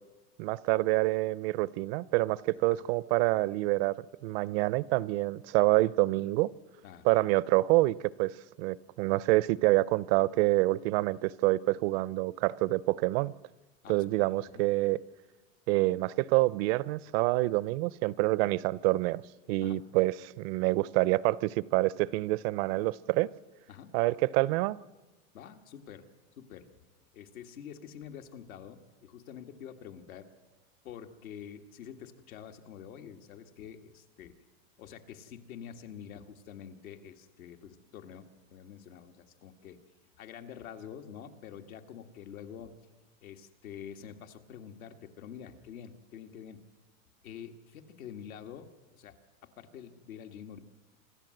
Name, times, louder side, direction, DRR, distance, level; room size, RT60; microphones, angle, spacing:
voice 1, 0.4-6.5 7.0-13.3 13.9-15.0 15.7-19.2 19.5-23.3 23.9-24.8, right 19 dB, 45° right, 21 dB, 0.5 m, -27 dB
voice 2, 13.8-14.3 14.5-14.6 19.6-19.8 23.7-23.9 25.3-26.1 26.4-26.7 27.1-30.3 30.8-34.4 34.8-39.8 40.2-42.8 43.2-46.6 47.2-49.2 49.4-50.6, left 8 dB, 75° left, 5 dB, 2.0 m, -47 dB
26.5 x 13.5 x 7.8 m, 1.2 s
supercardioid pair, 140°, 42 cm